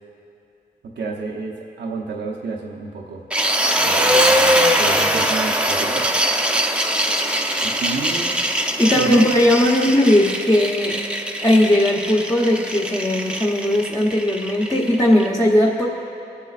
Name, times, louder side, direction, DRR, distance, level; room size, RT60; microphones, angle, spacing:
voice 1, 0.8-3.2 3.8-6.1 7.6-8.4 8.9-9.3, right 4 dB, 80° right, -1 dB, 0.8 m, -29 dB
sound 1, 3.3-15.3, right 1 dB, 5° right, 0.7 m, -21 dB
voice 2, 8.8-11.0 11.4-15.8, left 1 dB, 15° left, -4 dB, 1.0 m, -17 dB
24.5 x 8.2 x 2.5 m, 2.7 s
cardioid pair, 85°, 18 cm